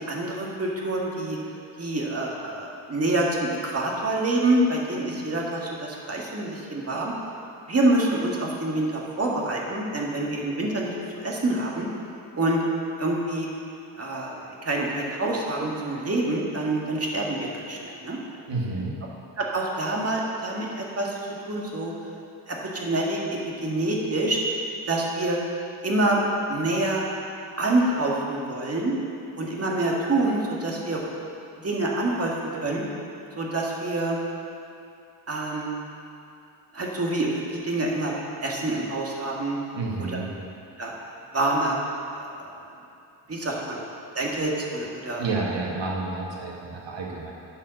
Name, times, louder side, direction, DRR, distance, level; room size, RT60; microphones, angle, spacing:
voice 1, 0.0-1.4 1.8-7.1 7.7-11.9 12.4-12.6 13.0-13.5 14.0-14.3 14.6-18.2 19.4-21.1 21.5-21.9 22.5-24.4 24.9-25.4 25.8-26.2 26.5-27.0 27.6-28.9 29.4-31.0 31.6-32.3 32.6-32.8 33.4-34.2 35.3-35.7 36.7-38.1 38.4-39.6 40.8-40.9 41.3-41.8 42.2-42.5 43.3-43.8 44.1-45.2, right 2 dB, 30° right, -2 dB, 2.0 m, -26 dB
voice 2, 18.5-18.9 39.7-40.3 45.2-47.3, right 3 dB, 65° right, -2 dB, 2.0 m, -30 dB
9.0 x 5.7 x 6.4 m, 2.6 s
cardioid pair, 85°, 46 cm